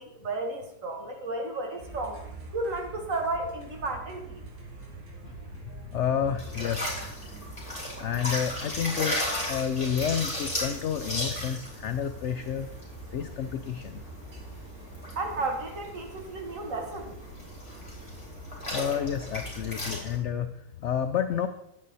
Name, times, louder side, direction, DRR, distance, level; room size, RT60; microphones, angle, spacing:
voice 1, 0.0-2.2 2.5-4.4 15.2-17.1, right 2 dB, 50° right, 3 dB, 1.8 m, -33 dB
sound 1, 1.8-20.0, right 3 dB, 70° right, 2.6 m, -46 dB
voice 2, 5.2-7.1 8.0-9.2 9.5-12.7 13.1-14.0 18.7-21.5, left 8 dB, 80° left, 9 dB, 0.6 m, -30 dB
sound 2, 6.4-20.2, left 1 dB, 15° left, 3.6 m, -36 dB
10.5 x 8.4 x 4.1 m, 0.79 s
omnidirectional pair, 1.8 m